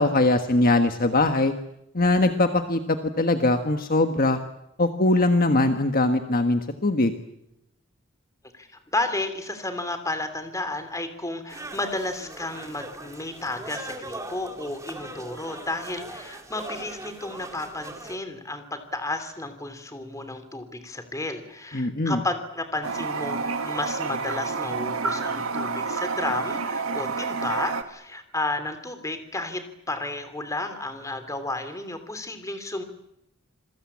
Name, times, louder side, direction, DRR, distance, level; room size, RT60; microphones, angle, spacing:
voice 1, 0.0-1.5 1.9-4.4 4.8-7.1 21.7-22.2, left 2 dB, 45° left, 7 dB, 1.4 m, -21 dB
voice 2, 8.5-32.8, left 2 dB, 15° left, 9 dB, 3.1 m, -32 dB
sound 1, 11.5-18.2, right 2 dB, 15° right, 2.5 m, -40 dB
Toilet flush, 22.8-27.8, right 4 dB, 85° right, 2.0 m, -29 dB
27.0 x 21.5 x 8.6 m, 0.82 s
head